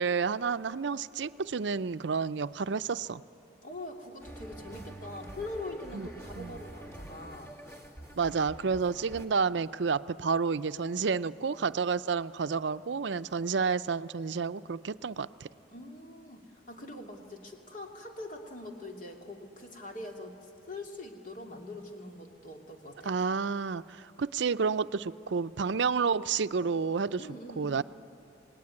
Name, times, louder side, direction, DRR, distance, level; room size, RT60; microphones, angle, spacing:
voice 1, 0.0-3.2 5.9-6.1 6.4-6.6 8.2-15.5 23.0-27.2 27.6-27.8, right 5 dB, 75° right, 13 dB, 0.5 m, -30 dB
voice 2, 3.6-7.6 15.7-23.2 27.2-27.8, left 2 dB, 45° left, 2 dB, 2.6 m, -43 dB
sound 1, 4.2-9.3, right 1 dB, 15° left, 1.6 m, -46 dB
27.0 x 19.5 x 9.6 m, 2.8 s
head